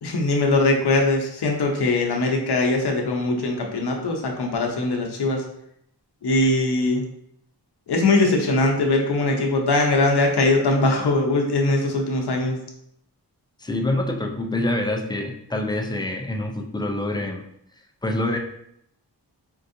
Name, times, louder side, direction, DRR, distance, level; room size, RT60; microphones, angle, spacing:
voice 1, 0.0-5.4 6.2-7.0 7.9-12.6, left 2 dB, 70° left, 1 dB, 0.7 m, -21 dB
voice 2, 13.6-17.4 18.0-18.4, left 1 dB, 10° left, 3 dB, 0.3 m, -26 dB
4.5 x 2.6 x 2.6 m, 0.73 s
wide cardioid pair, 130°, 41 cm